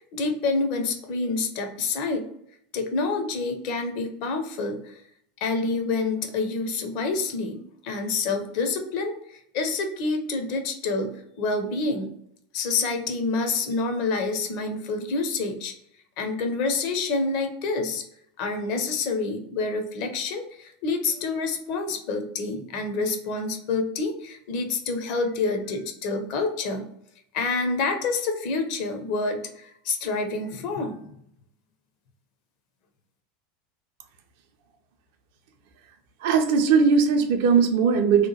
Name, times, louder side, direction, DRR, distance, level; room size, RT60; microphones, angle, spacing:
voice 1, 0.1-2.3 2.7-5.0 5.4-12.1 12.5-15.7 16.2-18.0 18.4-26.9 27.3-31.0, left 3 dB, 50° left, 6 dB, 0.5 m, -27 dB
voice 2, 36.2-38.3, right 5 dB, 55° right, 5 dB, 0.4 m, -19 dB
2.8 x 2.1 x 2.9 m, 0.71 s
figure-of-eight pair, 80°, 0 cm